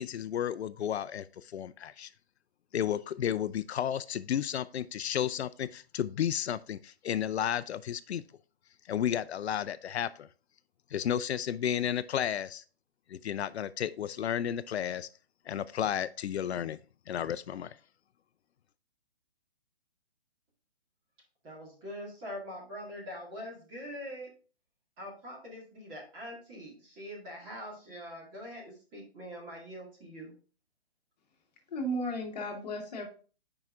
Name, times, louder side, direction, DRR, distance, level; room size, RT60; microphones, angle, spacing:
voice 1, 0.0-2.1 2.7-8.2 8.9-10.3 10.9-12.6 13.1-15.1 15.5-16.8 17.1-17.8, left 9 dB, 85° left, 0.5 m, -32 dB
voice 2, 21.4-24.3 25.0-30.3, equal, 15° right, 2.0 m, -43 dB
voice 3, 31.7-33.1, equal, 40° left, 1.5 m, -34 dB
8.9 x 4.9 x 2.5 m
hypercardioid pair, 165°, 32 cm